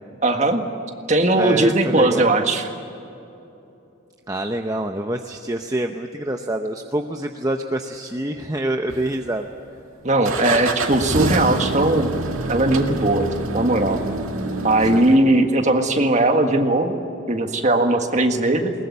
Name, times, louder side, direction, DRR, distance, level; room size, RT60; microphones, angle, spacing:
voice 1, 0.2-0.7 1.1-2.6 10.0-12.1 12.5-14.0 14.6-18.7, right 2 dB, 35° right, 5 dB, 1.7 m, -19 dB
voice 2, 1.3-2.3 4.3-9.5 14.8-15.0, right 1 dB, 15° right, 4 dB, 0.7 m, -26 dB
sound 1, 8.9-9.6 10.2-15.2, right 2 dB, 85° right, 2.0 m, -26 dB
21.0 x 20.0 x 9.7 m, 2.9 s
head